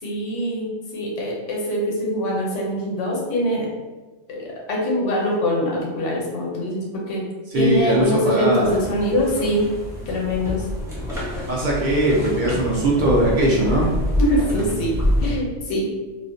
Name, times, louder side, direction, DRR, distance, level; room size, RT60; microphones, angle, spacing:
voice 1, 0.0-3.7 4.3-7.2 7.5-9.7 10.1-10.7 14.2-15.9, equal, 75° left, -2 dB, 1.0 m, -23 dB
voice 2, 7.5-8.8 11.5-13.9, right 1 dB, 55° right, -4 dB, 0.5 m, -19 dB
sound 1, 8.6-15.3, left 1 dB, 5° right, 0.4 m, -27 dB
2.4 x 2.1 x 2.6 m, 1.3 s
omnidirectional pair, 1.3 m